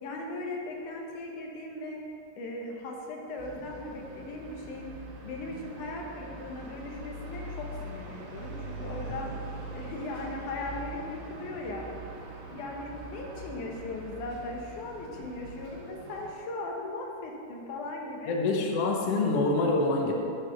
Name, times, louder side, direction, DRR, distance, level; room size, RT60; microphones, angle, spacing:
voice 1, 0.0-2.0 2.4-4.9 5.2-9.3 9.7-11.9 12.5-18.4, left 2 dB, 70° left, 0 dB, 2.3 m, -38 dB
sound 1, 3.4-16.3, right 2 dB, 75° right, 3.0 m, -43 dB
voice 2, 18.3-20.1, left 2 dB, 90° left, 0 dB, 1.3 m, -26 dB
9.4 x 4.8 x 6.2 m, 2.6 s
omnidirectional pair, 4.2 m